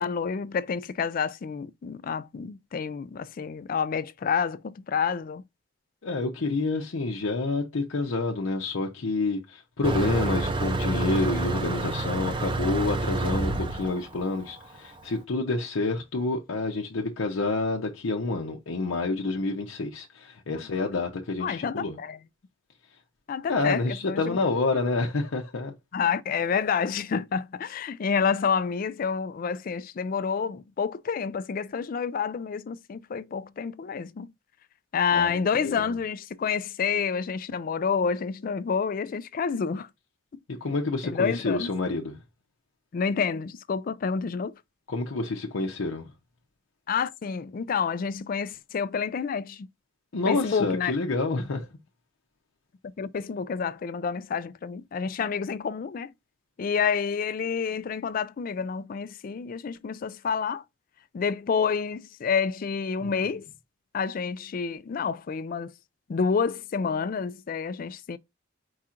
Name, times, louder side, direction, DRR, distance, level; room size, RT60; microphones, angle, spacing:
voice 1, 0.0-5.4 20.8-20.9 21.4-22.2 23.3-24.4 25.9-34.3 34.9-39.9 41.0-41.7 42.9-44.6 46.9-49.7 50.3-50.9 53.0-56.1 56.6-60.6 61.1-63.5 63.9-65.7 66.1-68.2, left 6 dB, 45° left, 0.3 m, -29 dB
voice 2, 6.0-22.0 23.5-25.7 35.1-35.9 40.6-42.2 44.9-46.1 50.1-51.7 63.0-63.1, left 3 dB, 85° left, 0.7 m, -28 dB
Motor vehicle (road), 9.8-15.0, right 2 dB, 25° right, 0.5 m, -28 dB
4.8 x 2.5 x 4.2 m
head